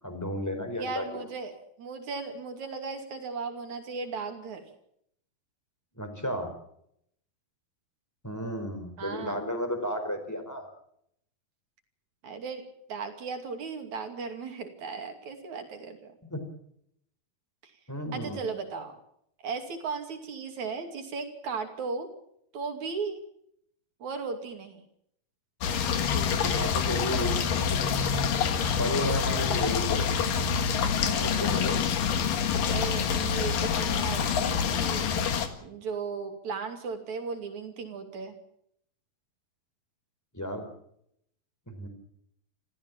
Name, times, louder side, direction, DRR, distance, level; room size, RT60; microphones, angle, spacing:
voice 1, 0.0-1.3 6.0-6.5 8.2-10.7 16.2-16.4 17.9-18.5 26.3-27.8 28.7-30.2 31.0-31.8 40.3-40.7 41.7-41.9, equal, 5° left, 7 dB, 4.0 m, -33 dB
voice 2, 0.7-4.7 9.0-9.4 12.2-16.2 18.1-19.0 19.4-22.1 22.5-23.2 24.0-24.8 32.7-38.4, right 4 dB, 50° right, 5 dB, 3.8 m, -36 dB
sound 1, 25.6-35.5, left 7 dB, 65° left, 3.3 m, -26 dB
27.5 x 15.5 x 7.4 m, 0.73 s
omnidirectional pair, 4.3 m